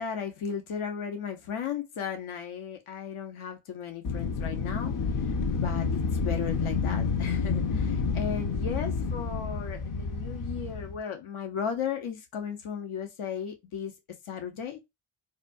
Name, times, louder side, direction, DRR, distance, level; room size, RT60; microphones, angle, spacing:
voice 1, 0.0-13.9 14.2-14.8, left 7 dB, 80° left, 1.0 m, -36 dB
Wind, 4.0-11.0, left 5 dB, 40° left, 0.6 m, -29 dB
4.1 x 2.3 x 2.4 m
cardioid pair, 95°, 49 cm